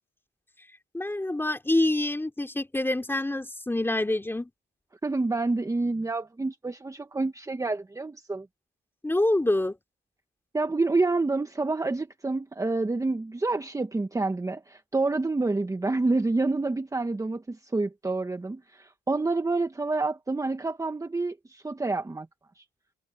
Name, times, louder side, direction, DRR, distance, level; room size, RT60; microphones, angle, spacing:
voice 1, 0.9-4.5 9.0-9.7, left 1 dB, 10° left, 3.4 m, -26 dB
voice 2, 5.0-8.5 10.5-22.3 22.6-22.7, right 3 dB, 15° right, 1.3 m, -28 dB
open air
cardioid pair, 90°, 20 cm